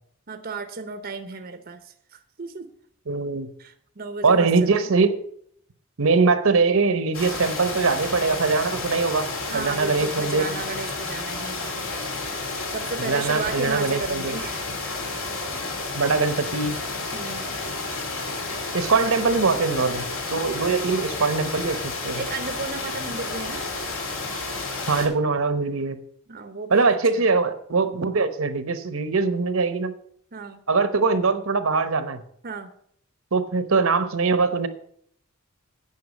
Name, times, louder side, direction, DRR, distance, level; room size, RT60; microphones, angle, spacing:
voice 1, 0.3-2.7 3.6-4.9 9.5-11.7 12.7-14.7 17.1-17.6 20.6-21.2 22.2-23.6 26.3-27.2 30.3-30.6 32.4-32.7, right 4 dB, 45° right, 8 dB, 0.7 m, -34 dB
voice 2, 3.1-3.5 4.2-5.2 6.0-9.3 9.5-10.6 13.0-14.4 15.9-16.8 18.7-22.2 24.9-26.0 26.7-29.9 30.7-32.2 33.3-34.7, right 4 dB, 70° right, 11 dB, 0.9 m, -22 dB
sound 1, 7.1-25.1, left 3 dB, 65° left, 2.5 m, -31 dB
9.5 x 5.7 x 8.3 m, 0.66 s
head